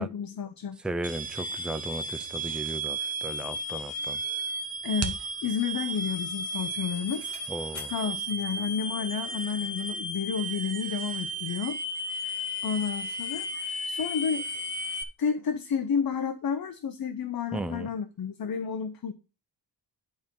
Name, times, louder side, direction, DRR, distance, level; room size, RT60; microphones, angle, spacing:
voice 1, 0.0-0.8 4.8-7.3 7.9-11.8 12.1-12.3 12.6-14.5 15.2-19.1, left 6 dB, 50° left, 0.8 m, -31 dB
voice 2, 0.8-4.2 7.5-7.9 17.5-17.9, right 2 dB, ahead, 0.4 m, -35 dB
sound 1, 1.0-15.0, right 1 dB, 20° right, 1.4 m, -34 dB
sound 2, 3.3-9.6, right 5 dB, 35° right, 1.1 m, -45 dB
Bicycle, 5.4-10.3 10.7-10.8, left 1 dB, 30° left, 6.4 m, -53 dB
10.5 x 4.5 x 5.3 m
wide cardioid pair, 155°, 45 cm